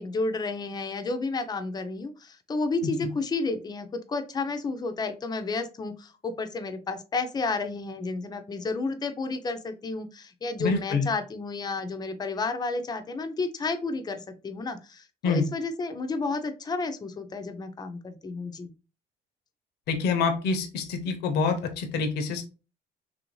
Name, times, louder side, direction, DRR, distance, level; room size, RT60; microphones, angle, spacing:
voice 1, 0.0-18.7, left 3 dB, 25° left, 7 dB, 0.5 m, -31 dB
voice 2, 10.6-11.1 15.2-15.5 19.9-22.4, left 4 dB, 75° left, 6 dB, 0.7 m, -26 dB
3.0 x 2.6 x 3.0 m, 0.32 s
cardioid pair, 110°, 17 cm